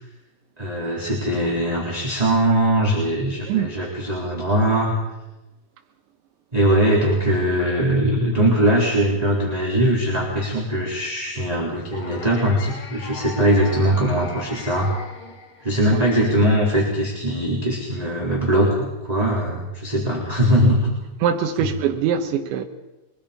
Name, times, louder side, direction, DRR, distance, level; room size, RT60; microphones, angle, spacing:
voice 1, 0.6-4.9 6.5-14.9 15.6-20.9 21.6-21.7, right 1 dB, 10° right, 2.9 m, -21 dB
sound 1, 11.9-16.1, left 4 dB, 40° left, 2.1 m, -38 dB
voice 2, 21.2-22.7, right 8 dB, 80° right, 3.6 m, -22 dB
23.5 x 21.5 x 5.2 m
omnidirectional pair, 5.3 m